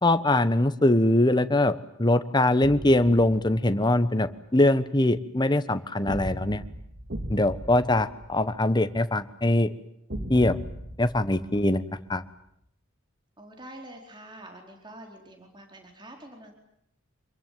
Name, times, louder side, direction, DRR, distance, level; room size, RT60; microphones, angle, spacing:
voice 1, 0.0-1.7 2.0-6.6 7.3-9.7 10.3-10.6 11.0-12.2, left 1 dB, 20° left, 11 dB, 1.2 m, -22 dB
sound 1, 2.6-4.0 6.1-9.0 10.1-12.3, equal, 50° right, 3.2 m, -38 dB
voice 2, 13.4-16.5, right 1 dB, 20° right, 3 dB, 4.4 m, -46 dB
26.0 x 22.5 x 9.4 m, 0.74 s
head